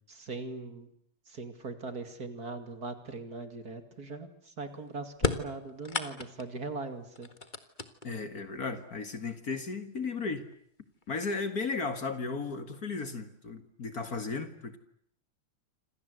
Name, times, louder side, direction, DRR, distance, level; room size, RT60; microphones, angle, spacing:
voice 1, 0.1-0.9 1.3-4.3 4.6-7.3, right 3 dB, 45° right, 8 dB, 2.9 m, -40 dB
sound 1, 5.1-6.6 7.2-8.3 9.4-9.5 10.4-10.5 11.0-11.5, left 3 dB, 25° left, 1.6 m, -34 dB
voice 2, 8.0-10.4 11.1-14.8, left 4 dB, 45° left, 9 dB, 2.3 m, -35 dB
27.0 x 27.0 x 8.1 m, 0.66 s
omnidirectional pair, 2.3 m